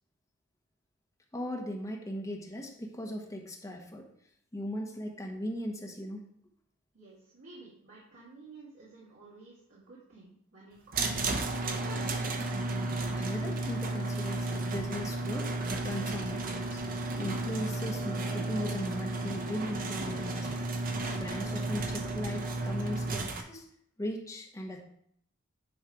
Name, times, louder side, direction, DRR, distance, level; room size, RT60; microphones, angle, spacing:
voice 1, 1.3-4.1 4.5-6.2 13.1-15.5 15.8-16.8 17.2-20.6 21.1-23.6 24.0-24.8, equal, 15° left, 1 dB, 1.0 m, -38 dB
voice 2, 6.9-12.5, right 3 dB, 70° right, -8 dB, 2.3 m, -51 dB
sound 1, 10.9-23.4, right 2 dB, 40° right, 0.7 m, -33 dB
9.6 x 3.2 x 5.0 m, 0.69 s
head